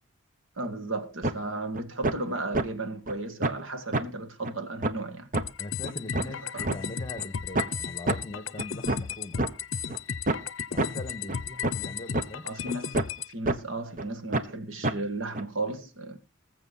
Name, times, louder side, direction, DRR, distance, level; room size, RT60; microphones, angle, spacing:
voice 1, 0.6-5.3 6.2-6.7 12.4-12.9 13.3-16.2, right 2 dB, 70° right, 1.9 m, -34 dB
sound 1, 1.2-1.3 1.7-2.1 2.5-2.6 3.1-3.2 3.4-3.6 3.9-4.0 4.4-4.5 4.8-4.9 5.3-5.4 5.8-6.8 7.2-7.3 7.6-7.7 8.1-8.2 8.6-9.5 9.9-10.0 10.3-10.4 10.8-10.9 11.3-11.4 11.6-11.8 12.1-12.3 12.7-13.2 13.5-13.6 14.0-14.1 14.3-14.5 14.8-14.9 15.3-15.4, right 2 dB, 40° right, 1.0 m, -27 dB
sound 2, 5.3-13.3, left 7 dB, 70° left, 0.6 m, -35 dB
voice 2, 5.6-9.4 10.7-12.5, left 2 dB, 25° left, 1.7 m, -41 dB
19.0 x 7.4 x 4.1 m
head